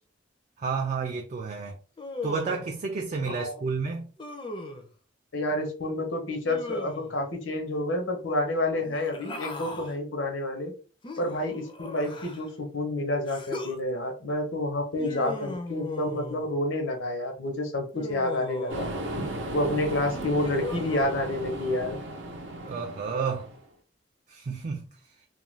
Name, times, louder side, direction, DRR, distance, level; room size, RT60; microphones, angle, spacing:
voice 1, 0.6-1.8 2.2-4.1 22.6-23.5 24.3-24.9, right 5 dB, 40° right, 0.3 m, -31 dB
Human voice, 2.0-2.8 4.2-4.9 6.4-7.2 8.8-9.9 11.0-12.5 13.3-13.8 15.0-16.5 17.9-19.1 20.1-21.0, left 2 dB, 25° left, 0.4 m, -38 dB
voice 2, 3.2-3.6 5.3-10.7 11.2-18.9 19.5-22.0, left 1 dB, 85° left, 0.7 m, -29 dB
sound 1, 18.7-23.6, right 1 dB, 80° right, 0.6 m, -35 dB
2.4 x 2.2 x 3.1 m
head